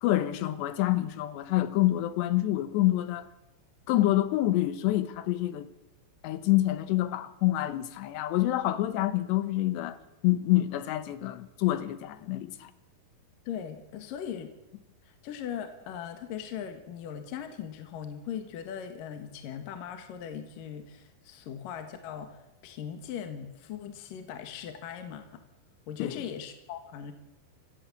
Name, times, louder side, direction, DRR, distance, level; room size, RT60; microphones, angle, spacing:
voice 1, 0.0-3.3 3.9-5.7 6.2-10.0 10.2-12.7 26.0-26.2, left 15 dB, 75° left, 3.2 m, -27 dB
voice 2, 13.5-14.5 15.1-25.4 25.9-27.1, left 8 dB, 60° left, 2.9 m, -39 dB
25.0 x 15.0 x 8.6 m
omnidirectional pair, 5.2 m